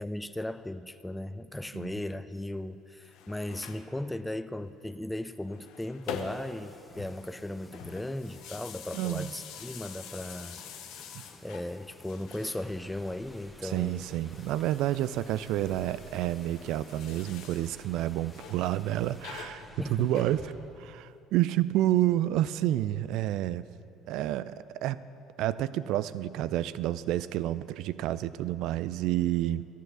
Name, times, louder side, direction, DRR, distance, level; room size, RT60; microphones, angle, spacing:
voice 1, 0.0-10.6 11.4-14.1 19.8-20.3, left 1 dB, 5° left, 12 dB, 0.4 m, -37 dB
sound 1, 2.9-3.9 5.3-6.6 6.9-11.7 12.0-13.1 14.2-17.8 18.3-18.7 19.2-20.8, left 7 dB, 65° left, 0.9 m, -46 dB
sound 2, 6.0-19.4, left 3 dB, 25° left, 0.8 m, -55 dB
voice 2, 8.9-9.3 11.1-11.2 13.6-19.6 19.9-20.4 20.8-23.7 24.1-25.0 25.4-29.7, right 14 dB, 60° right, 17 dB, 0.3 m, -29 dB
sound 3, 12.5-20.5, equal, 10° right, 1.5 m, -53 dB
14.5 x 8.3 x 6.4 m, 2.7 s
figure-of-eight pair, 55°, 0 cm